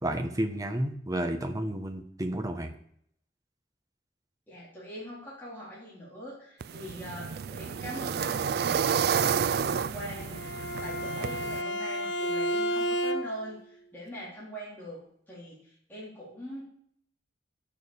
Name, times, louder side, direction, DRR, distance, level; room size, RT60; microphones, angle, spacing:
voice 1, 0.0-2.7, right 1 dB, 20° right, 4 dB, 1.3 m, -31 dB
voice 2, 4.5-16.6, equal, 10° left, -7 dB, 3.5 m, -42 dB
sound 1, 6.6-11.6, right 7 dB, 60° right, 0.4 m, -30 dB
Bowed string instrument, 10.2-13.6, equal, 70° left, 1.1 m, -31 dB
11.5 x 6.8 x 7.2 m, 0.67 s
head